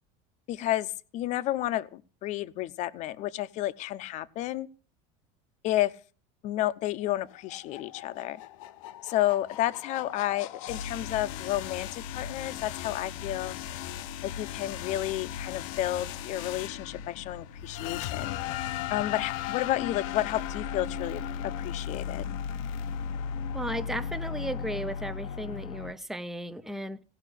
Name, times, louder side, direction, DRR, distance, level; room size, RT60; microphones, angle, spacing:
voice 1, 0.5-4.7 5.6-5.9 6.4-8.4 9.0-13.6 14.2-18.4 18.9-21.2 21.6-22.3, left 14 dB, 45° left, 0.8 m, -31 dB
sound 1, 7.1-25.9, left 8 dB, 80° left, 0.9 m, -36 dB
voice 2, 23.5-27.0, right 1 dB, ahead, 0.6 m, -35 dB
17.5 x 5.9 x 9.9 m
cardioid pair, 150°, 17 cm